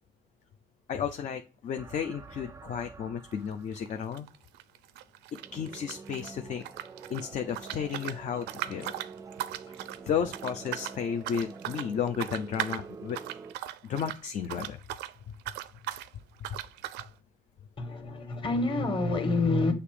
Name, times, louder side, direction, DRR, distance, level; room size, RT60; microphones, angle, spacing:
voice 1, 0.9-4.3 5.5-6.6 7.1-8.9 10.1-13.2 13.8-14.8 15.3-15.4, left 7 dB, 45° left, 0.6 m, -33 dB
sound 1, 1.8-4.0 5.3-13.5, right 5 dB, 20° right, 0.4 m, -47 dB
sound 2, 3.3-3.5 3.8-6.3 6.6-15.1 15.4-16.1 16.4-17.1, right 14 dB, 85° right, 0.5 m, -38 dB
voice 2, 17.8-19.7, left 2 dB, 30° left, 1.7 m, -27 dB
6.7 x 2.9 x 4.9 m
cardioid pair, 110°, 17 cm